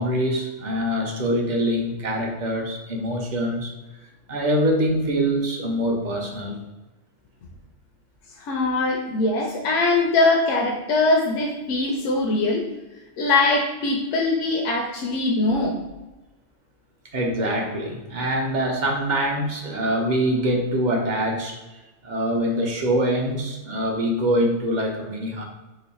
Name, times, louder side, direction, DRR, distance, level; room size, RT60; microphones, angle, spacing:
voice 1, 0.0-3.7 4.3-6.6 17.1-21.6 22.0-25.4, equal, 50° right, 1 dB, 0.6 m, -24 dB
voice 2, 8.4-12.6 13.2-15.8, left 2 dB, 75° left, -1 dB, 0.9 m, -22 dB
3.1 x 2.5 x 4.0 m, 1.1 s
omnidirectional pair, 1.3 m